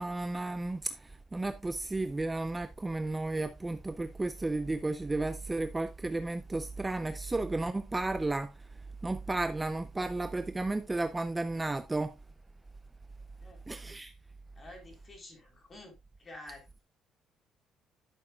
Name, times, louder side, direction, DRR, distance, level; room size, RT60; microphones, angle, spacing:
voice 1, 0.0-8.7 9.0-12.2 13.7-14.1, right 2 dB, 15° right, 0.5 m, -33 dB
voice 2, 13.4-13.9 14.6-16.8, left 1 dB, 25° left, 4.1 m, -51 dB
12.5 x 6.9 x 2.3 m
cardioid pair, 135°, 0 cm